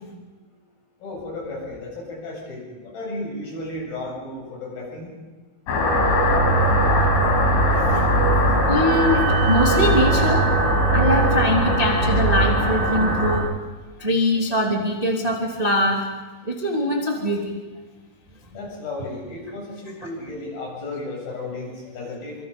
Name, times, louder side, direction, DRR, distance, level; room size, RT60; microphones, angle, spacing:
voice 1, 1.0-5.1 18.5-22.4, left 2 dB, 50° left, -1 dB, 9.3 m, -34 dB
sound 1, 5.7-13.4, right 1 dB, 75° left, 6.4 m, -19 dB
voice 2, 7.7-10.5 10.9-13.5 14.0-16.0 16.4-17.6 20.0-20.1, equal, 15° right, 0 dB, 1.3 m, -23 dB
Wind instrument woodwind instrument, 8.8-13.5, right 11 dB, 90° right, 3.5 m, -30 dB
27.0 x 25.5 x 5.3 m, 1.2 s
omnidirectional pair, 5.6 m